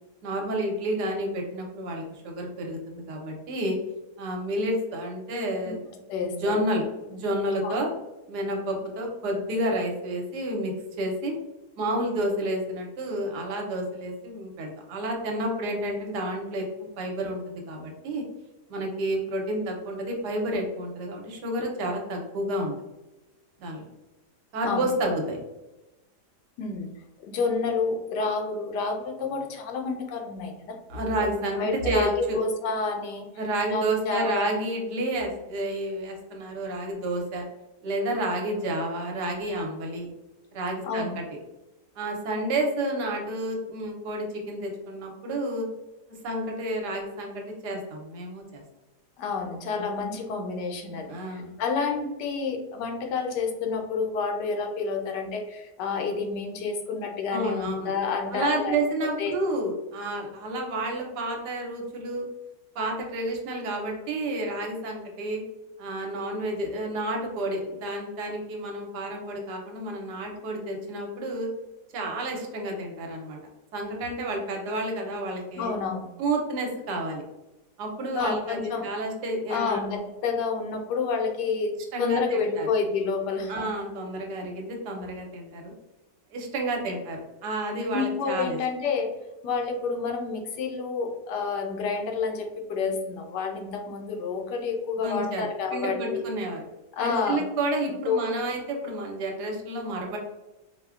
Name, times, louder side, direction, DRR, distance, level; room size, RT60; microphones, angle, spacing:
voice 1, 0.2-3.8 4.2-5.9 6.3-6.8 7.1-7.9 8.3-11.4 11.8-18.2 18.7-22.7 23.6-23.9 24.5-25.4 30.9-32.4 33.4-37.4 37.8-40.1 40.5-41.2 42.0-45.7 46.1-48.6 49.8-49.9 51.1-51.6 57.3-57.9 58.3-62.3 62.7-65.4 65.8-71.5 71.9-73.4 73.7-75.7 76.2-77.2 77.8-79.8 81.9-82.7 83.5-85.7 86.3-88.6 95.0-96.6 97.0-100.2, right 1 dB, 80° right, 1 dB, 1.3 m, -30 dB
voice 2, 6.1-6.6 7.6-7.8 24.7-24.9 26.6-26.9 27.2-30.8 31.2-31.3 31.6-33.3 33.7-34.6 40.8-41.2 49.2-58.8 59.2-59.3 75.6-76.1 78.1-78.9 79.5-81.7 82.0-83.7 87.9-89.1 89.4-96.2 96.9-97.4 98.0-98.3, left 4 dB, 85° left, 3 dB, 1.2 m, -29 dB
4.4 x 2.1 x 2.4 m, 1.0 s
omnidirectional pair, 1.8 m